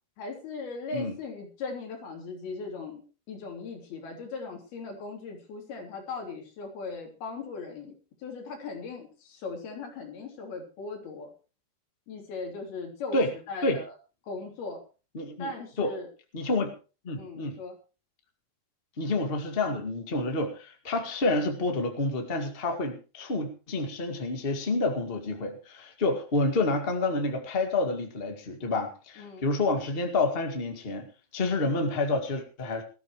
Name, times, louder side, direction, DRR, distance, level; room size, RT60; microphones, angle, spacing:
voice 1, 0.2-11.3 12.1-13.2 13.5-13.9 14.2-14.8 15.4-16.1 17.2-17.8 29.2-29.5, left 4 dB, 70° left, 1 dB, 5.2 m, -38 dB
voice 2, 15.1-15.5 15.8-15.9 16.3-16.7 17.0-17.6 19.0-31.1 31.3-32.8, left 2 dB, 25° left, 5 dB, 1.2 m, -28 dB
19.5 x 13.0 x 3.1 m, 0.33 s
omnidirectional pair, 4.5 m